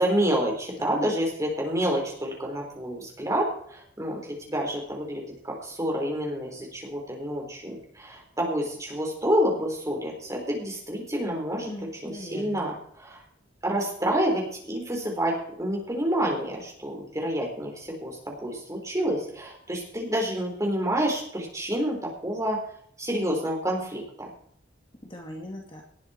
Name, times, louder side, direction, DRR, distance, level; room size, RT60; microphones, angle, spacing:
voice 1, 0.0-11.7 12.0-13.2 13.6-22.0 22.2-22.6 23.0-24.3, equal, 15° right, 0 dB, 4.1 m, -28 dB
voice 2, 0.8-1.1 11.7-12.7 25.0-25.8, left 1 dB, 25° left, 1 dB, 1.9 m, -40 dB
18.5 x 9.7 x 4.4 m, 0.63 s
head